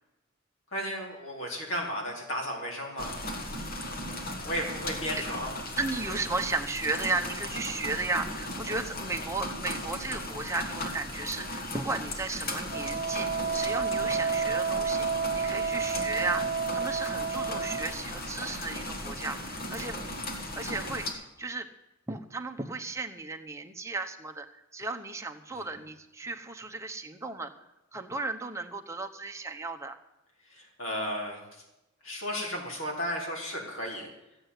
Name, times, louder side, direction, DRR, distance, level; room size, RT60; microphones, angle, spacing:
voice 1, 0.7-3.1 4.4-5.5 15.4-15.7 25.6-25.7 30.5-31.6 32.0-34.1, equal, 75° left, -1 dB, 4.0 m, -34 dB
sound 1, 3.0-21.1, left 1 dB, 50° left, 1.9 m, -37 dB
voice 2, 5.8-15.1 15.3-16.4 16.7-20.0 20.4-21.7 22.1-27.5 27.9-30.0, right 3 dB, 15° right, 4 dB, 1.0 m, -35 dB
Wind instrument woodwind instrument, 12.7-17.9, right 5 dB, 40° right, 0.4 m, -30 dB
14.5 x 7.9 x 8.2 m, 0.97 s
head